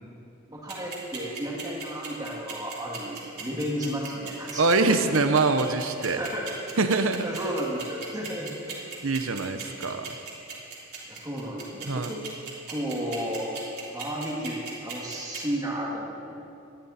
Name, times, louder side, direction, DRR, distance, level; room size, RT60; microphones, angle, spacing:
voice 1, 0.5-5.0 6.2-6.5 7.2-8.5 11.1-12.2 12.7-13.5 13.9-16.4, equal, 20° right, -4 dB, 2.3 m, -33 dB
sound 1, 0.7-15.4, right 6 dB, 55° right, 3.5 m, -37 dB
voice 2, 4.6-6.2 6.8-7.2 9.0-10.1 11.9-12.1, right 3 dB, 85° right, 8 dB, 0.9 m, -24 dB
20.0 x 13.0 x 4.3 m, 2.6 s
head